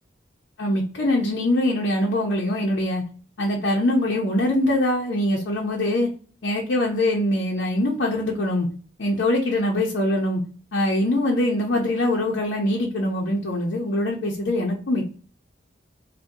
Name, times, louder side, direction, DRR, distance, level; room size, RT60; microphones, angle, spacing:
voice 1, 0.6-3.0 3.4-6.1 6.4-8.7 9.0-10.4 10.7-15.1, left 1 dB, 70° left, -1 dB, 0.6 m, -23 dB
2.7 x 2.2 x 3.5 m, 0.41 s
head